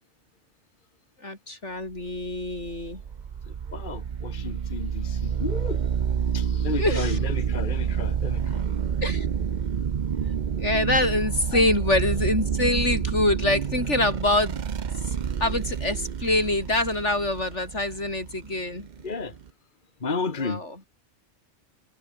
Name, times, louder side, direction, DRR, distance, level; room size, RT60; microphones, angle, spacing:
voice 1, 1.2-3.0 6.8-7.2 9.0-9.3 10.6-14.6 15.4-18.9 20.4-20.7, left 2 dB, 85° left, 6.5 m, -25 dB
sound 1, 2.1-19.5, right 7 dB, 45° right, 0.8 m, -29 dB
voice 2, 3.7-5.8 6.3-8.6 11.5-11.7 19.0-19.3 20.0-20.9, left 4 dB, 45° left, 1.8 m, -33 dB
omnidirectional pair, 1.2 m